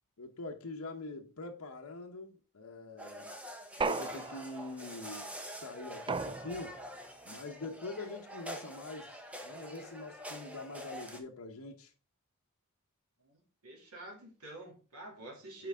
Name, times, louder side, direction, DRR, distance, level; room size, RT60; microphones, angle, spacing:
voice 1, 0.2-3.3 3.8-6.8 7.2-9.2 9.4-11.9, left 2 dB, 75° left, 0.9 m, -44 dB
sound 1, 3.0-11.2, equal, 5° right, 1.0 m, -46 dB
sound 2, 3.8-4.8 6.1-6.9, right 4 dB, 20° right, 0.3 m, -36 dB
voice 2, 13.2-15.7, right 1 dB, 80° right, 2.7 m, -47 dB
7.9 x 4.6 x 3.5 m
head